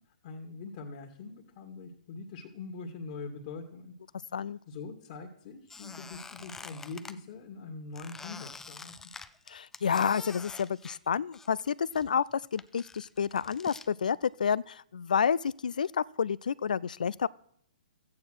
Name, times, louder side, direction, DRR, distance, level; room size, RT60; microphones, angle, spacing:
voice 1, 0.2-3.9 4.7-8.9, left 4 dB, 45° left, 2 dB, 2.0 m, -43 dB
Squeak, 5.7-7.2 8.0-11.7 11.9-13.9, left 4 dB, 10° left, 0.6 m, -47 dB
voice 2, 9.5-17.3, left 7 dB, 70° left, 22 dB, 0.4 m, -29 dB
14.0 x 9.5 x 6.3 m, 0.71 s
hypercardioid pair, 130°, 4 cm